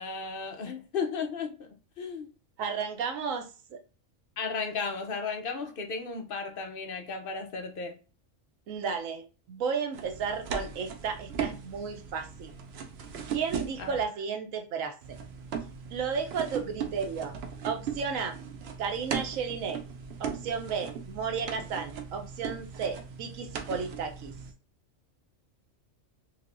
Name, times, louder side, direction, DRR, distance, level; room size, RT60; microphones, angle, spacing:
voice 1, 0.0-1.7 2.0-2.3 4.4-8.0 13.8-14.0, left 5 dB, 55° left, 0.7 m, -34 dB
voice 2, 2.6-3.8 8.7-12.5 13.3-15.2 15.9-17.4 17.6-18.4 18.8-19.8 20.2-24.3, right 6 dB, 85° right, 1.1 m, -33 dB
sound 1, 9.9-14.0 15.0-24.5, right 7 dB, 60° right, 0.8 m, -38 dB
3.3 x 3.3 x 2.5 m
omnidirectional pair, 1.3 m